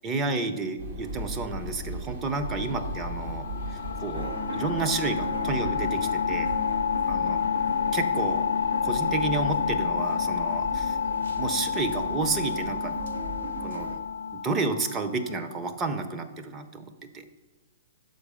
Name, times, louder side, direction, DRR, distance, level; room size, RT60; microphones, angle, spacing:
voice 1, 0.0-6.5 7.1-7.4 7.9-8.5 8.8-11.0 11.4-13.0 13.6-13.9 14.3-17.2, right 3 dB, 20° right, 8 dB, 0.6 m, -31 dB
sound 1, 0.8-14.1, right 1 dB, 55° right, 0.9 m, -39 dB
sound 2, 2.2-15.7, left 7 dB, 90° left, 0.3 m, -29 dB
sound 3, 4.1-14.0, right 4 dB, 85° right, 0.7 m, -39 dB
6.4 x 4.7 x 4.9 m, 1.3 s
hypercardioid pair, 150°, 0 cm